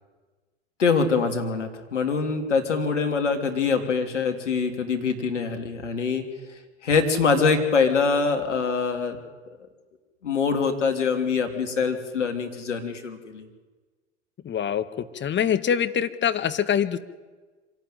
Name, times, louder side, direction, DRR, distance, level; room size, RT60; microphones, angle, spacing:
voice 1, 0.8-6.2 6.8-9.2 10.2-13.4, left 5 dB, 85° left, 6 dB, 3.1 m, -24 dB
voice 2, 14.4-17.0, left 8 dB, 30° left, 11 dB, 1.9 m, -24 dB
25.5 x 18.0 x 9.4 m, 1.3 s
hypercardioid pair, 85°, 35 cm